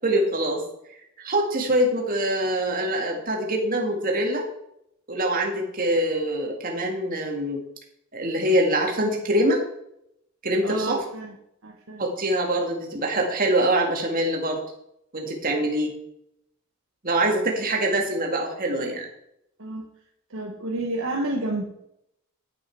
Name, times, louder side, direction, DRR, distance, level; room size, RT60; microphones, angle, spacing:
voice 1, 0.0-0.6 1.2-4.5 5.1-7.6 8.1-9.6 10.4-11.0 12.0-14.6 15.1-15.9 17.0-19.1, right 1 dB, 40° right, 1 dB, 1.9 m, -24 dB
voice 2, 10.6-11.3 11.6-12.0 19.6-19.9 20.3-21.6, right 2 dB, 60° right, 1 dB, 1.0 m, -30 dB
8.8 x 8.7 x 4.6 m, 0.78 s
head